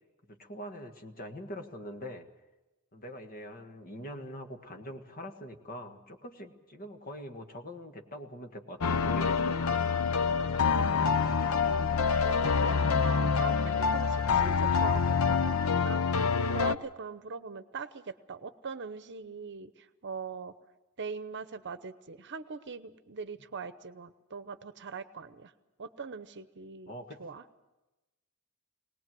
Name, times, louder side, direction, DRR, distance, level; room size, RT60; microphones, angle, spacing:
voice 1, 0.3-2.3 2.9-9.8 10.2-11.1 26.9-27.2, equal, 40° left, 5 dB, 1.7 m, -44 dB
sound 1, 8.8-16.8, left 5 dB, 70° left, 0.7 m, -26 dB
voice 2, 12.2-15.4 15.8-20.5 21.0-25.5 25.8-26.9 27.2-27.4, right 5 dB, 55° right, 12 dB, 0.9 m, -41 dB
21.5 x 19.0 x 7.7 m, 1.1 s
head